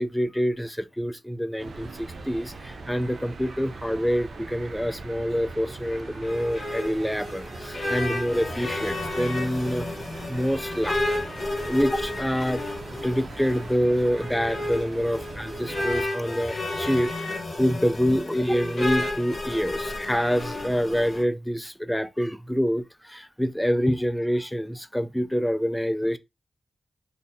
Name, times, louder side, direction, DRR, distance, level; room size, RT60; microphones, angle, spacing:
voice 1, 0.0-9.9 10.3-11.0 11.7-12.6 13.0-26.2, equal, 5° left, 0.3 m, -26 dB
sound 1, 1.6-16.1, right 3 dB, 65° right, 0.6 m, -41 dB
sound 2, 5.9-21.2, left 2 dB, 40° left, 1.2 m, -32 dB
2.7 x 2.6 x 4.0 m
wide cardioid pair, 100°, 0 cm